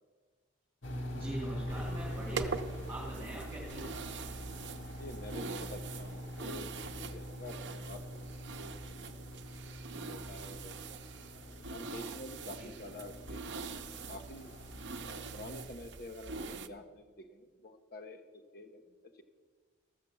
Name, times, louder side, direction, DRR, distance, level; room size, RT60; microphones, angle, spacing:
sound 1, 0.8-15.6, equal, 90° left, 1.3 m, -44 dB
voice 1, 1.1-2.5 2.9-3.9 12.6-12.7, right 1 dB, 15° right, -5 dB, 2.7 m, -42 dB
sound 2, 1.7-16.7, right 4 dB, 75° right, 0.7 m, -44 dB
voice 2, 5.0-8.3 8.6-9.1 9.9-10.7 11.4-14.5 15.1-18.2 18.5-19.2, left 1 dB, 55° left, 5 dB, 0.9 m, -48 dB
14.5 x 6.7 x 6.9 m, 1.5 s
head